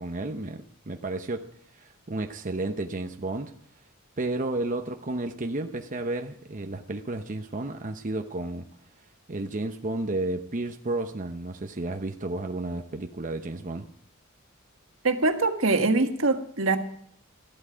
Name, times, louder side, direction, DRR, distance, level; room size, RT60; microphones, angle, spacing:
voice 1, 0.0-3.5 4.2-8.7 9.3-13.9, right 2 dB, 40° right, 5 dB, 0.8 m, -32 dB
voice 2, 15.0-16.8, right 3 dB, 75° right, 6 dB, 1.6 m, -23 dB
15.5 x 12.0 x 5.1 m, 0.64 s
head